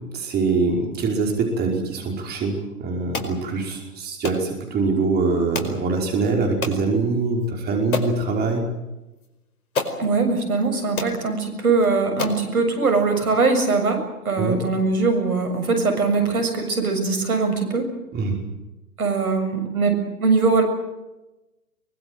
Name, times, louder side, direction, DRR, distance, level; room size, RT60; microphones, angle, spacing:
voice 1, 0.0-8.7 14.4-14.6 18.1-18.4, right 3 dB, 20° right, 2 dB, 5.2 m, -23 dB
sound 1, 3.1-3.4 4.2-4.4 5.5-5.8 6.6-6.8 7.4-7.5 7.9-8.2 9.2-9.3 9.7-10.0 10.6-10.7 11.0-11.2 11.8-11.9 12.2-12.5, left 4 dB, 70° left, 4.9 m, -28 dB
voice 2, 10.0-14.0 14.3-17.9 19.0-20.6, right 4 dB, 70° right, 6 dB, 7.2 m, -21 dB
24.0 x 23.0 x 7.9 m, 1.0 s
figure-of-eight pair, 115°, 45 cm